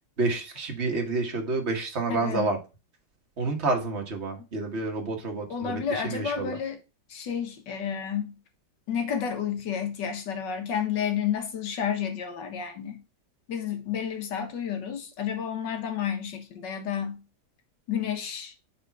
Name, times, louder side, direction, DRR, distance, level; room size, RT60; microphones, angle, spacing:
voice 1, 0.2-2.6 3.4-6.6, right 3 dB, 40° right, 1.6 m, -29 dB
voice 2, 2.1-2.5 5.5-6.8 7.1-8.4 8.9-13.0 13.5-17.2 17.9-18.5, left 8 dB, 80° left, 1.8 m, -31 dB
5.2 x 4.3 x 5.8 m
omnidirectional pair, 1.9 m